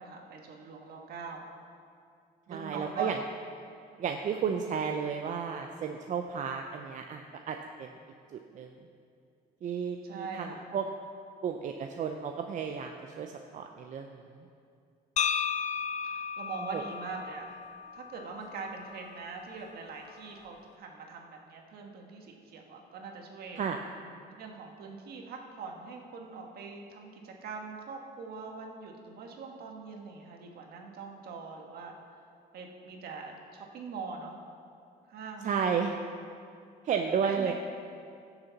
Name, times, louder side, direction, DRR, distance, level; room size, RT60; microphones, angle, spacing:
voice 1, 0.0-1.4 2.5-3.1 10.0-10.7 16.0-17.5 17.9-23.6 24.4-31.9 32.5-34.4 35.1-36.1 37.2-37.5, right 4 dB, 65° right, 2 dB, 1.5 m, -42 dB
voice 2, 2.5-3.2 4.0-7.9 8.3-8.7 9.6-10.8 11.4-14.2 16.7-16.8 23.6-23.8 35.4-35.9 36.8-37.5, right 7 dB, 45° right, 4 dB, 0.6 m, -33 dB
sound 1, 15.2-19.2, left 7 dB, 45° left, 0.6 m, -34 dB
16.0 x 6.9 x 4.1 m, 2.4 s
cardioid pair, 110°, 17 cm